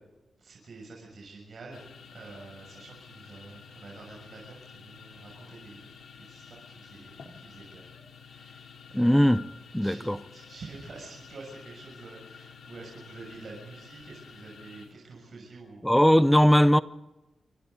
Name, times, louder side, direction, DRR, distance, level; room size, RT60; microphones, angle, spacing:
voice 1, 0.4-1.8 2.1-5.9 6.2-7.9 8.1-9.3 9.8-10.0 10.3-15.8, right 3 dB, 45° right, 6.7 m, -47 dB
sound 1, 1.7-14.9, left 6 dB, 85° left, 3.1 m, -50 dB
voice 2, 8.9-9.4 9.7-10.2 15.8-16.8, equal, 5° left, 0.6 m, -19 dB
28.0 x 24.0 x 4.0 m
wide cardioid pair, 175°, 0 cm